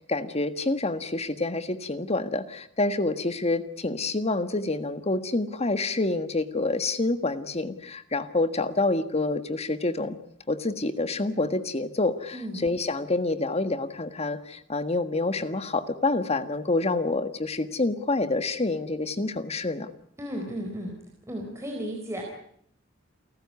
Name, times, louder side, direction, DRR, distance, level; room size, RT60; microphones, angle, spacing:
voice 1, 0.1-10.2 10.5-12.3 12.6-19.9, left 2 dB, 30° left, 11 dB, 1.6 m, -27 dB
voice 2, 12.3-12.6 20.2-20.9 21.3-22.3, equal, 15° right, 0 dB, 4.2 m, -34 dB
29.0 x 14.0 x 9.6 m, 0.68 s
head